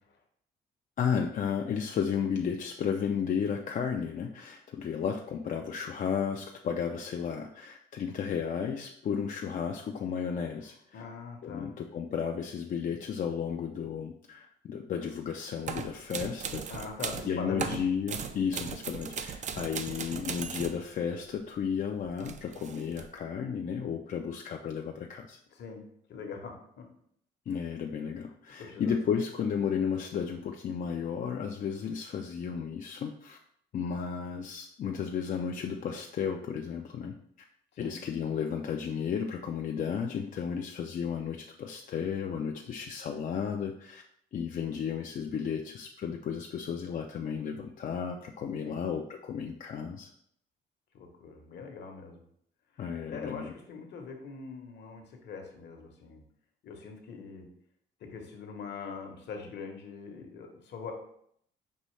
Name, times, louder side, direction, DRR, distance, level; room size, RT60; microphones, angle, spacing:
voice 1, 1.0-11.0 11.4-16.6 17.3-25.4 27.5-33.4 33.7-37.2 37.8-44.0 44.3-50.1 52.8-53.5, left 7 dB, 45° left, 2 dB, 0.4 m, -33 dB
voice 2, 10.9-11.8 16.7-17.9 25.5-25.8 26.1-26.9 28.6-29.0 37.7-38.0 48.6-48.9 50.9-52.2 52.7-56.2 56.6-57.5 58.0-60.9, left 5 dB, 60° left, 3 dB, 1.0 m, -42 dB
sound 1, 15.7-17.3 17.6-20.8 22.0-23.1, right 7 dB, 40° right, 0.4 m, -38 dB
5.4 x 2.7 x 3.1 m, 0.68 s
cardioid pair, 100°, 20 cm